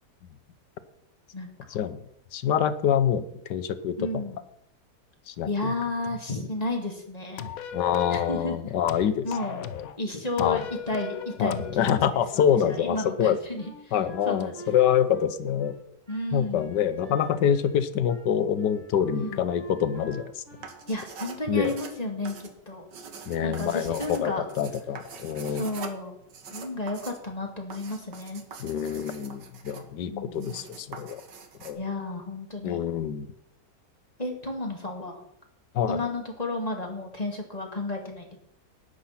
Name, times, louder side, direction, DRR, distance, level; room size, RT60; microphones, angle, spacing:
voice 1, 2.3-3.2 3.5-4.2 5.3-5.7 7.7-9.3 10.4-10.6 11.4-13.4 13.9-15.7 16.3-20.3 21.5-21.8 23.3-25.7 28.6-31.2 31.6-31.8 32.6-33.3 35.7-36.0, left 9 dB, 80° left, 12 dB, 1.5 m, -26 dB
voice 2, 4.0-4.4 5.5-7.5 8.1-8.6 9.2-9.6 10.0-13.9 14.3-14.6 16.1-16.8 17.1-17.2 19.2-19.4 20.9-22.4 22.7-22.9 23.4-24.4 25.5-26.2 26.5-28.4 30.0-30.6 31.8-32.8 34.2-35.2 35.9-38.4, left 2 dB, 20° left, 2 dB, 2.3 m, -32 dB
sound 1, 7.4-8.4 8.9-10.0 10.4-12.1, left 7 dB, 60° left, 1.1 m, -37 dB
Wind instrument woodwind instrument, 13.6-17.8 18.1-18.3 18.5-20.9, right 3 dB, 50° right, 6.2 m, -45 dB
sound 2, 20.5-31.7, right 5 dB, 85° right, 2.0 m, -44 dB
13.0 x 9.6 x 5.8 m, 0.78 s
omnidirectional pair, 1.8 m